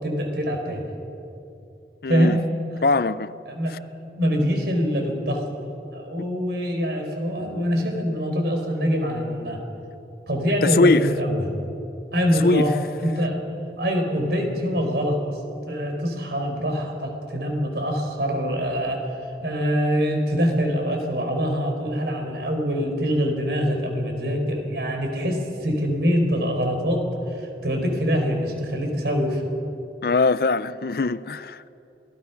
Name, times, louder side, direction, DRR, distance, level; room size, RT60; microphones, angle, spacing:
voice 1, 0.0-0.8 2.1-2.4 3.5-3.8 4.2-5.4 5.9-9.6 10.3-11.5 12.1-12.7 13.0-13.4 13.8-15.2 15.7-19.0 19.4-29.4, equal, 70° right, 4.3 m, -24 dB
voice 2, 2.0-2.4 2.8-3.3 10.6-11.1 12.4-12.7 30.0-31.7, left 3 dB, 55° left, 0.5 m, -21 dB
27.5 x 17.5 x 5.9 m
head